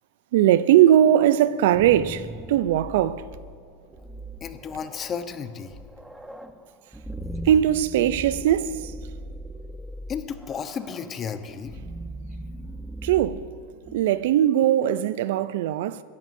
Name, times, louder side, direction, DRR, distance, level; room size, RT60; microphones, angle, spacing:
voice 1, 0.3-3.3 7.5-8.9 13.0-13.5 13.9-16.0, right 11 dB, 70° right, 0.5 m, -20 dB
sound 1, 1.5-14.3, equal, 5° right, 0.8 m, -39 dB
voice 2, 4.4-5.8 10.1-11.8, left 6 dB, 30° left, 1.0 m, -33 dB
25.5 x 14.0 x 2.7 m
hypercardioid pair, 100°, 0 cm